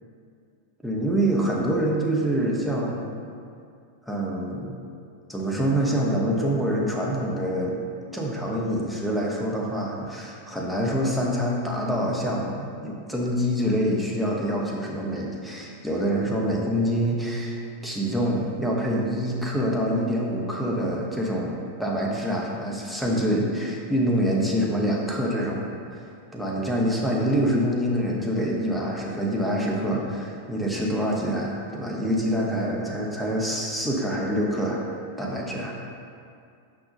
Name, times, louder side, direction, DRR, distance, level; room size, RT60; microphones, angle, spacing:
voice 1, 0.8-3.0 4.1-4.7 5.3-7.9 8.1-25.7 25.9-26.0 26.3-34.8 35.2-35.8, equal, ahead, -4 dB, 1.0 m, -26 dB
6.5 x 5.8 x 2.7 m, 2.3 s
figure-of-eight pair, 90°, 0 cm